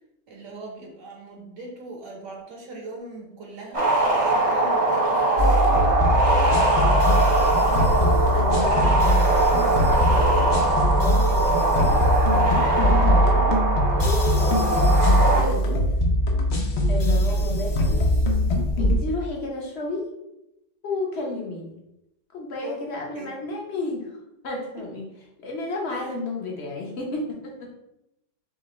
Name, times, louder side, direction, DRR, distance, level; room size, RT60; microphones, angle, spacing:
voice 1, 0.3-5.9 7.6-8.0 22.6-22.8 23.1-23.3 24.8-24.9 25.9-26.1, right 2 dB, 70° right, -1 dB, 1.5 m, -40 dB
sound 1, 3.7-15.4, right 2 dB, 30° right, 0.8 m, -22 dB
sound 2, 5.4-19.0, equal, 75° left, 0.6 m, -21 dB
voice 2, 7.6-12.0 12.2-13.6 13.9-15.9 16.9-18.2 18.8-20.1 20.8-21.8 22.3-24.1 24.4-25.1 25.4-27.8, left 2 dB, 50° left, -1 dB, 0.9 m, -33 dB
6.1 x 2.2 x 3.1 m, 0.87 s
omnidirectional pair, 1.9 m